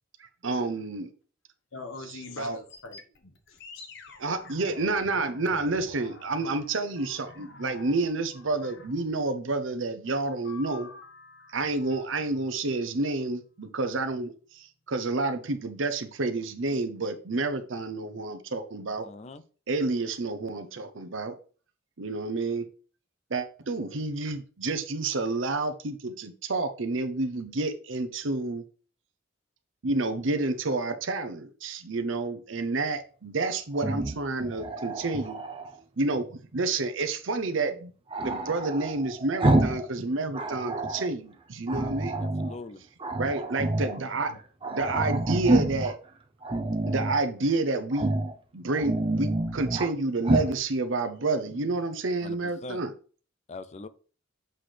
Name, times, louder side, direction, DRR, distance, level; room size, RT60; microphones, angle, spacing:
voice 1, 0.2-1.1 2.4-2.6 4.2-10.9 11.5-19.1 19.7-21.3 22.0-22.7 23.3-28.6 29.8-35.4 36.0-37.9 38.2-42.2 43.2-44.3 44.7-45.9 46.9-48.1 48.5-52.9, right 3 dB, 70° right, 8 dB, 0.8 m, -29 dB
voice 2, 1.7-3.9 44.3-44.4, left 3 dB, 85° left, 5 dB, 1.4 m, -43 dB
sound 1, 2.7-9.2 10.4-13.0, left 3 dB, 60° left, 1.1 m, -49 dB
voice 3, 19.0-19.4 42.1-42.8 52.2-52.8 53.5-53.9, left 3 dB, 35° left, 13 dB, 0.5 m, -42 dB
Growling, 33.7-35.7 38.1-39.9 40.2-41.1 41.7-42.6 43.0-44.0 44.3-44.4 44.6-45.9 46.4-47.2 47.9-48.3 48.7-49.9 50.2-50.5, right 2 dB, 25° right, 0.6 m, -28 dB
7.7 x 5.9 x 3.3 m, 0.40 s
head